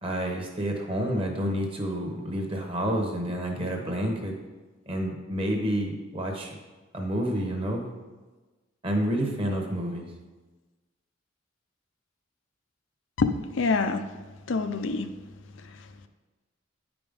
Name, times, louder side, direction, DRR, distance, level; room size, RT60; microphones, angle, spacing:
voice 1, 0.0-4.3 4.9-6.6 6.9-7.9 8.8-10.0, equal, 25° right, 2 dB, 0.9 m, -29 dB
voice 2, 13.2-14.1 14.5-15.1, left 4 dB, 70° left, 9 dB, 0.5 m, -26 dB
9.4 x 5.0 x 3.6 m, 1.2 s
head